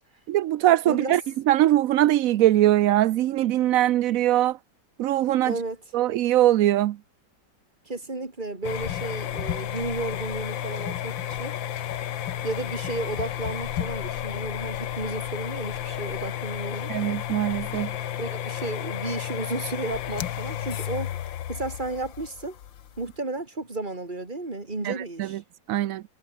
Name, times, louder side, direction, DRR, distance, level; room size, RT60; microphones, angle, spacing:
voice 1, 0.3-1.2 1.5-4.6 5.0-5.5 5.9-7.0 16.9-17.9 24.8-25.4 25.7-26.0, right 13 dB, 75° right, 0.8 m, -21 dB
voice 2, 0.8-1.2 5.4-5.8 7.8-11.5 12.4-16.9 18.2-21.1 21.5-22.6 23.0-25.4, right 2 dB, 25° right, 3.2 m, -33 dB
sound 1, 8.6-23.1, left 11 dB, 80° left, 1.8 m, -32 dB
omnidirectional pair, 2.0 m